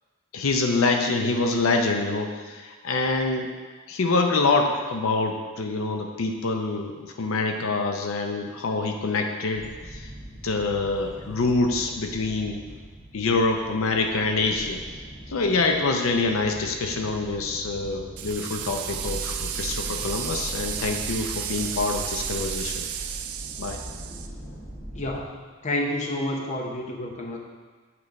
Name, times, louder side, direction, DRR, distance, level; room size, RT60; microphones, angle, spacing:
voice 1, 0.3-3.5 3.9-10.1 10.4-12.6 13.1-14.8 15.3-22.8 23.6-23.8, left 3 dB, 70° left, 3 dB, 0.5 m, -25 dB
sound 1, 9.5-25.2, equal, 25° right, 1.8 m, -40 dB
sound 2, 18.2-24.3, right 10 dB, 85° right, 0.4 m, -33 dB
voice 2, 24.9-27.4, left 1 dB, 35° left, 0 dB, 0.7 m, -30 dB
8.4 x 3.2 x 5.2 m, 1.5 s
head